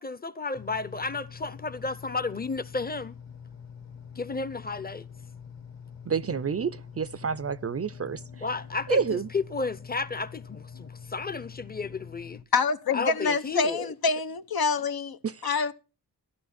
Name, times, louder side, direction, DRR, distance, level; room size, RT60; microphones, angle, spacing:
voice 1, 0.0-3.2 4.2-5.0 8.4-12.4 12.9-13.9, left 4 dB, 25° left, 0.8 m, -32 dB
sound 1, 0.5-12.4, left 7 dB, 40° left, 1.3 m, -45 dB
voice 2, 6.1-8.4 8.9-9.3 15.2-15.6, right 6 dB, 35° right, 0.5 m, -29 dB
voice 3, 12.5-15.7, left 4 dB, 65° left, 0.8 m, -26 dB
12.0 x 11.0 x 4.3 m
cardioid pair, 55°, 40 cm